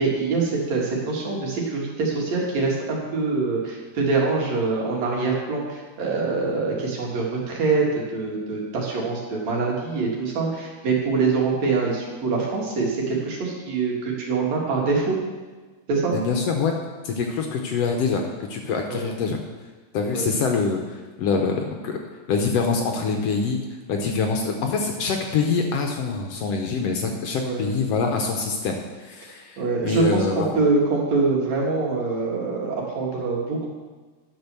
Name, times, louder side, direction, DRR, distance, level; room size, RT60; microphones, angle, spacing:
voice 1, 0.0-15.2 15.9-16.1 18.9-19.1 20.1-20.3 27.4-27.7 29.6-33.7, right 4 dB, 65° right, -2 dB, 3.2 m, -24 dB
voice 2, 16.1-16.8 17.0-19.4 19.9-22.0 22.3-23.6 23.9-30.5, left 4 dB, 65° left, 3 dB, 1.8 m, -25 dB
10.5 x 6.3 x 6.8 m, 1.3 s
omnidirectional pair, 3.4 m